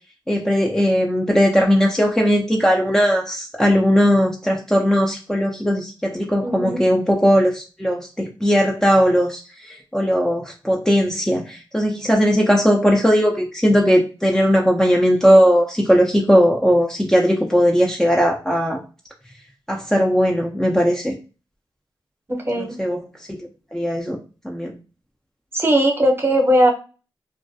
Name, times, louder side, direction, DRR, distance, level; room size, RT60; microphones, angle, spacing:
voice 1, 0.3-18.8 19.7-21.2 22.6-23.0 23.3-24.2 24.4-24.7, equal, 5° left, -1 dB, 0.4 m, -18 dB
voice 2, 6.4-6.8 22.3-22.8 25.5-26.7, equal, 25° right, 2 dB, 0.8 m, -18 dB
2.2 x 2.1 x 2.6 m, 0.34 s
cardioid pair, 55°, 9 cm